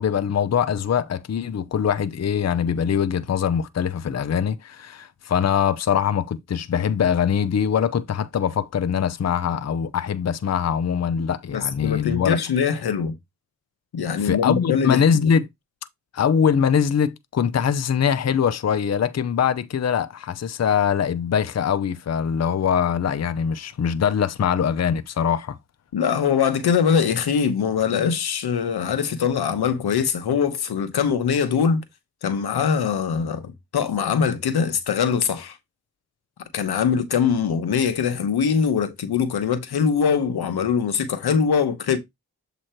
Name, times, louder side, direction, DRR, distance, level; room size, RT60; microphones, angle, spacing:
voice 1, 0.0-12.4 14.2-15.5 16.1-25.6, left 7 dB, 45° left, 0.7 m, -22 dB
voice 2, 11.5-13.1 13.9-15.3 25.9-31.8 32.2-35.6 36.5-42.0, left 6 dB, 80° left, 1.1 m, -22 dB
7.5 x 3.1 x 4.4 m
cardioid pair, 45°, 38 cm